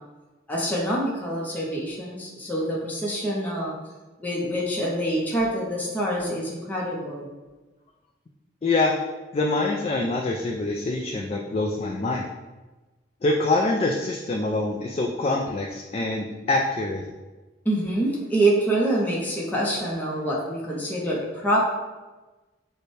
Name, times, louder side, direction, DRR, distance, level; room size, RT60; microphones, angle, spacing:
voice 1, 0.5-3.7 4.2-7.3 17.6-21.6, right 1 dB, 10° left, -5 dB, 0.7 m, -26 dB
voice 2, 8.6-9.0 9.3-12.3 13.2-17.1, left 2 dB, 35° left, 0 dB, 0.3 m, -25 dB
6.6 x 2.2 x 3.2 m, 1.2 s
head